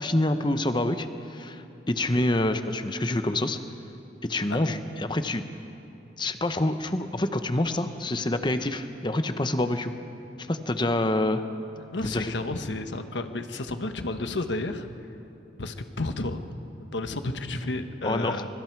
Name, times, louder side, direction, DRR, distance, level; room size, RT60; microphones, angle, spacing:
voice 1, 0.0-3.6 4.2-5.4 6.2-9.9 10.4-11.4 12.0-12.3 18.0-18.4, left 1 dB, 25° left, 9 dB, 0.9 m, -27 dB
voice 2, 11.8-14.9 15.6-16.4 16.8-18.5, left 2 dB, 90° left, 8 dB, 1.2 m, -32 dB
25.0 x 22.0 x 4.7 m, 2.8 s
head